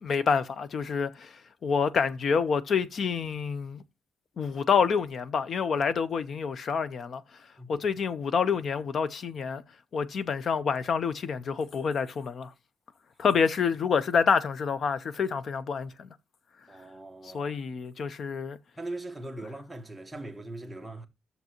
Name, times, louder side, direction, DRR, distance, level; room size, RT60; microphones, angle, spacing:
voice 1, 0.0-1.3 1.6-3.8 4.4-7.2 7.7-9.6 9.9-12.5 13.2-16.1 17.2-18.6, left 6 dB, 50° left, 0.6 m, -27 dB
voice 2, 16.7-17.6 18.8-21.1, right 2 dB, 5° right, 1.3 m, -40 dB
12.0 x 6.8 x 2.9 m
wide cardioid pair, 165°, 0 cm